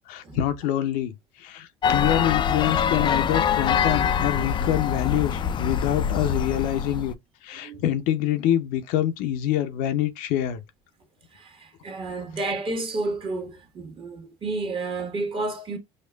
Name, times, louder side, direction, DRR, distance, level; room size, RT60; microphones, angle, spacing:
voice 1, 0.1-7.1 7.4-10.6, left 11 dB, 65° left, 0.7 m, -26 dB
sound 1, 1.8-7.1, left 7 dB, 30° left, 0.4 m, -24 dB
voice 2, 11.3-15.8, right 2 dB, 35° right, 1.3 m, -31 dB
6.4 x 2.4 x 2.3 m
supercardioid pair, 90°, 15 cm